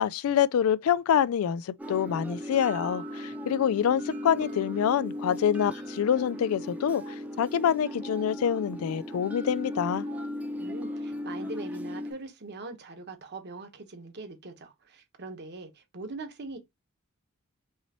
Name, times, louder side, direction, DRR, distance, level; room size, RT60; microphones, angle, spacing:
voice 1, 0.0-10.1, left 8 dB, 80° left, 0.3 m, -26 dB
sound 1, 1.8-12.1, left 1 dB, 5° right, 0.7 m, -37 dB
Telephone, 4.1-4.2 4.5-4.6 5.5-5.7 6.0-6.1 6.8-7.2 7.9-8.2 9.0-9.3 9.9-10.3 11.1-11.2 11.5-12.1, right 12 dB, 70° right, 1.9 m, -50 dB
voice 2, 10.6-16.6, right 3 dB, 50° right, 1.1 m, -42 dB
5.6 x 3.0 x 2.9 m
head